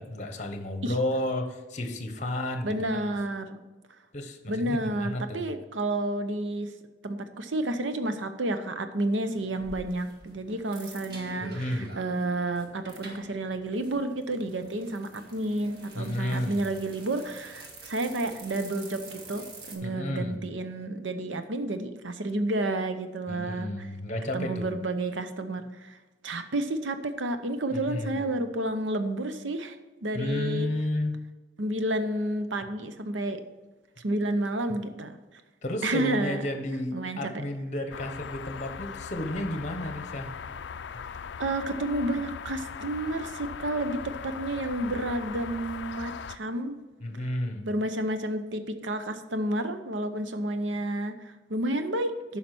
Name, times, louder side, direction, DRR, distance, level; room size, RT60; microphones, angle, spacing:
voice 1, 0.0-2.7 3.0-3.1 4.1-5.4 11.4-11.9 15.9-16.6 19.8-20.4 23.3-24.7 27.7-28.2 30.1-31.1 35.6-40.3 47.0-47.7, left 1 dB, 40° left, 6 dB, 1.0 m, -32 dB
voice 2, 2.6-3.6 4.5-6.7 7.0-23.9 24.3-26.0 26.2-30.7 31.6-33.4 34.0-35.2 35.8-36.4 36.9-37.4 41.4-46.8 47.6-52.4, right 1 dB, 85° right, 9 dB, 0.8 m, -30 dB
sound 1, 9.3-19.8, right 2 dB, 55° right, 1.6 m, -48 dB
sound 2, 37.9-46.4, left 6 dB, 70° left, 0.4 m, -39 dB
9.6 x 5.7 x 6.0 m, 1.2 s
head